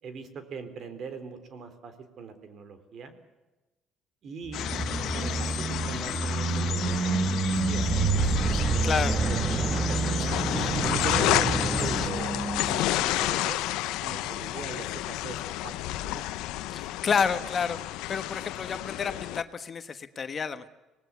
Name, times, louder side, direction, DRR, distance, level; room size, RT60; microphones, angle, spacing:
voice 1, 0.0-3.1 4.2-4.8 5.1-7.9 8.1-10.4 10.8-12.3 12.7-16.2, right 5 dB, 50° right, 10 dB, 3.8 m, -41 dB
sound 1, 4.5-12.1, left 11 dB, 65° left, 1.4 m, -33 dB
sound 2, 4.5-13.2, right 4 dB, 30° right, 1.3 m, -28 dB
sound 3, 10.3-19.4, left 16 dB, 85° left, 0.8 m, -30 dB
voice 2, 16.7-17.8 18.1-20.7, left 6 dB, 35° left, 10 dB, 1.3 m, -29 dB
26.0 x 19.5 x 8.4 m, 1.1 s
cardioid pair, 115°, 0 cm